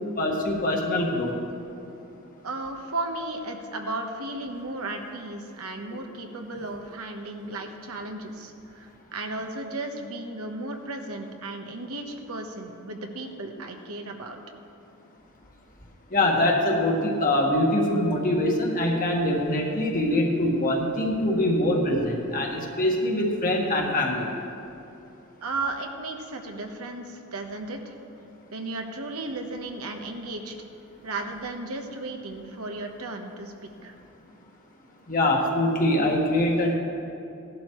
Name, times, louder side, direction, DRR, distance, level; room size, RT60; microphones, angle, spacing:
voice 1, 0.2-1.3 16.1-24.3 35.1-36.7, left 1 dB, 40° left, 0 dB, 1.5 m, -23 dB
voice 2, 2.4-14.4 25.4-27.9 28.5-30.5 31.0-34.0, right 2 dB, 85° right, 4 dB, 1.1 m, -35 dB
16.5 x 11.0 x 3.1 m, 2.8 s
head